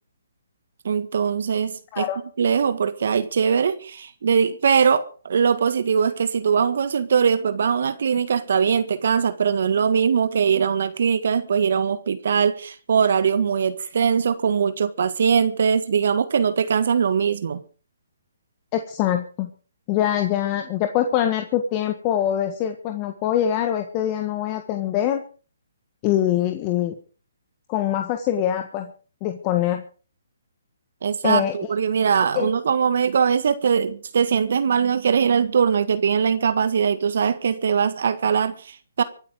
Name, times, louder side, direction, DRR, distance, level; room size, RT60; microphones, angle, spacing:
voice 1, 0.8-2.1 2.4-17.6 31.0-39.0, right 6 dB, 60° right, 1.6 m, -21 dB
voice 2, 18.7-19.5 19.9-25.2 26.0-26.9 27.7-28.9 29.2-29.8 31.2-31.5 32.3-32.5, left 11 dB, 30° left, 1.6 m, -23 dB
25.0 x 9.1 x 5.0 m
hypercardioid pair, 145°, 0 cm